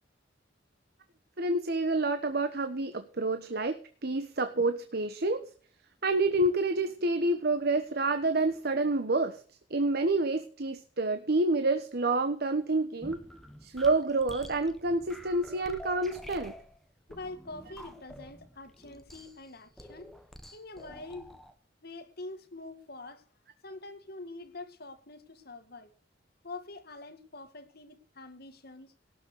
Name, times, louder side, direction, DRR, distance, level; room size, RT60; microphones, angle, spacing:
voice 1, 1.4-5.4 6.0-9.4 9.7-13.2 13.6-16.5, right 2 dB, 60° right, 1.2 m, -28 dB
sound 1, 13.0-21.5, equal, ahead, 1.6 m, -48 dB
voice 2, 17.1-20.1 20.5-21.3 21.8-23.2 23.6-25.9 26.4-28.9, left 2 dB, 55° left, 2.0 m, -45 dB
18.0 x 6.8 x 6.6 m
head